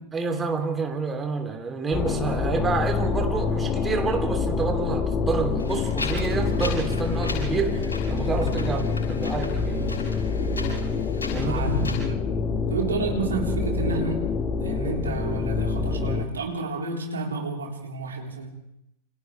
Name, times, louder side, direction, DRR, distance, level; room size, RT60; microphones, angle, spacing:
voice 1, 0.1-9.9 11.3-11.5, right 4 dB, 15° right, 4 dB, 3.1 m, -28 dB
sound 1, 1.9-16.3, left 4 dB, 25° left, 1.7 m, -26 dB
Wind, 5.6-12.0, left 4 dB, 70° left, 6.7 m, -34 dB
voice 2, 11.3-12.2 12.7-14.3 14.6-18.6, right 4 dB, 70° right, 0 dB, 3.8 m, -31 dB
28.5 x 27.0 x 3.4 m, 0.80 s
figure-of-eight pair, 90°, 0 cm